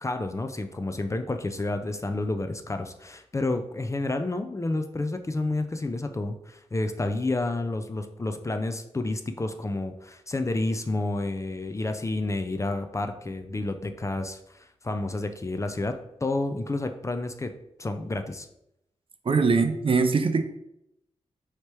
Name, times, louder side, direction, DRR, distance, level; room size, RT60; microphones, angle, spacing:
voice 1, 0.0-17.5 17.8-18.5, left 2 dB, 25° left, 7 dB, 0.4 m, -30 dB
voice 2, 19.3-20.4, right 4 dB, 45° right, 8 dB, 0.5 m, -22 dB
3.3 x 2.8 x 4.5 m, 0.80 s
cardioid pair, 55°, 12 cm